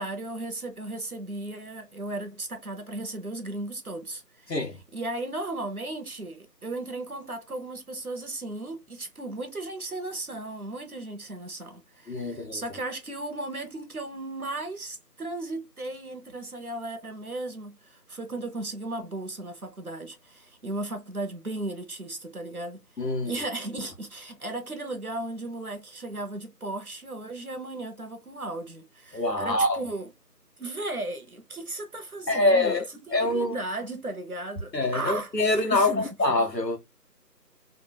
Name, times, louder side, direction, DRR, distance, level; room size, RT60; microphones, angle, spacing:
voice 1, 0.0-4.6 4.9-22.8 23.2-30.1 30.6-36.1, right 2 dB, 60° right, 0.9 m, -36 dB
voice 2, 12.1-12.6 23.0-23.3 29.1-29.8 32.3-32.8 33.1-33.6 34.7-36.8, left 2 dB, 80° left, 1.3 m, -25 dB
3.4 x 2.4 x 2.8 m
figure-of-eight pair, 170°, 49 cm